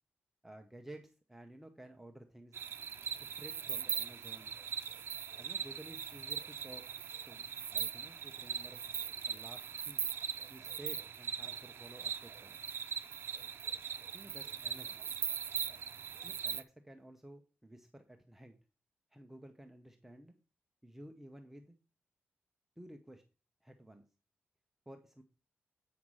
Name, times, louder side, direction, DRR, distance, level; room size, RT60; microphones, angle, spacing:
voice 1, 0.4-2.6 3.2-4.6 5.4-6.9 7.3-8.9 9.3-10.1 10.5-12.6 14.1-15.0 16.2-18.6 19.1-20.3 20.8-21.7 22.8-23.2 23.6-24.0 24.9-25.2, right 1 dB, 5° right, 4 dB, 0.8 m, -53 dB
sound 1, 2.5-16.6, right 7 dB, 70° right, 0.6 m, -40 dB
8.5 x 5.8 x 4.7 m, 0.33 s
wide cardioid pair, 145°, 4 cm